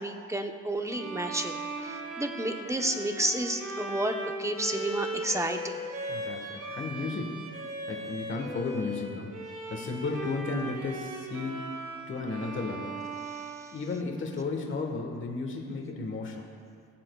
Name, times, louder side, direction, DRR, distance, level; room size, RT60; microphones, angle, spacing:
voice 1, 0.0-5.8 13.2-13.7, right 1 dB, 10° right, 5 dB, 0.8 m, -31 dB
Bowed string instrument, 0.9-14.3, right 1 dB, 45° right, 2.0 m, -38 dB
voice 2, 6.1-7.4 7.9-9.4 9.7-11.7 12.1-12.9 13.7-16.5, left 3 dB, 40° left, 1 dB, 1.3 m, -34 dB
19.5 x 7.4 x 2.3 m, 2.1 s
cardioid pair, 90°, 30 cm